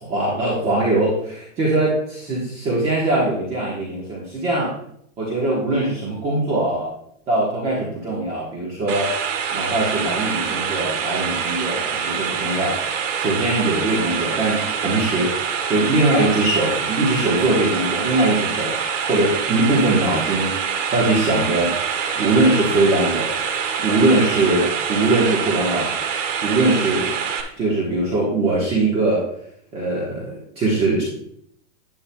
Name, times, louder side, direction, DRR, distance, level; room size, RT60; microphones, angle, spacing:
voice 1, 0.0-4.7 5.2-6.9 7.3-9.1 9.5-12.8 13.1-15.4 15.7-18.8 19.1-20.6 20.9-21.7 22.1-23.3 23.8-25.9 26.4-27.1 27.6-29.3 29.7-31.0, right 2 dB, 15° right, -5 dB, 1.3 m, -21 dB
sound 1, 8.9-27.4, right 7 dB, 70° right, 1.7 m, -25 dB
10.5 x 9.3 x 2.3 m, 0.70 s
supercardioid pair, 175°, 39 cm